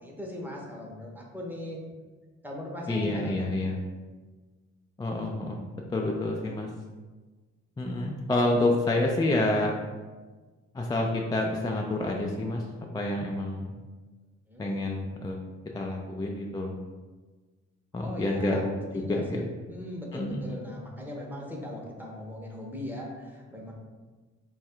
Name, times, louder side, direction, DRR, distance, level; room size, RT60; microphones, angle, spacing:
voice 1, 0.0-1.8 2.4-3.5 14.5-14.7 18.0-18.6 18.9-23.7, left 1 dB, 5° right, -2 dB, 0.8 m, -39 dB
voice 2, 2.9-3.8 5.0-5.6 5.9-6.7 7.8-9.7 10.7-12.6 12.9-13.7 14.6-15.4 15.7-16.8 17.9-19.4 20.1-20.5, left 2 dB, 15° left, 0 dB, 0.3 m, -28 dB
3.0 x 2.4 x 4.3 m, 1.3 s
cardioid pair, 90°, 30 cm